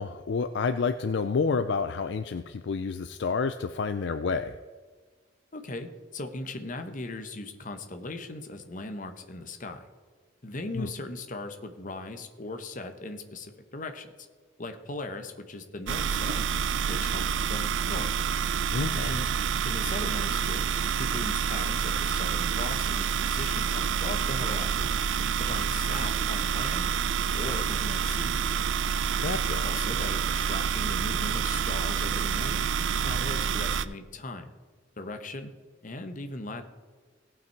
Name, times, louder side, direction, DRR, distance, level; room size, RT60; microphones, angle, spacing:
voice 1, 0.0-4.5 10.8-10.9 18.7-19.2 29.2-29.7, left 4 dB, 60° left, 10 dB, 0.4 m, -29 dB
voice 2, 5.5-9.9 10.4-14.1 14.6-16.5 16.9-17.2 17.5-18.1 19.0-19.3 19.6-20.7 21.0-24.9 25.4-26.9 27.3-28.4 29.6-32.5 33.0-34.5 35.0-35.5 35.8-36.6, left 2 dB, 45° left, 7 dB, 1.0 m, -38 dB
sound 1, 15.9-33.9, right 7 dB, 75° right, 0.4 m, -28 dB
17.5 x 5.9 x 4.6 m, 1.5 s
head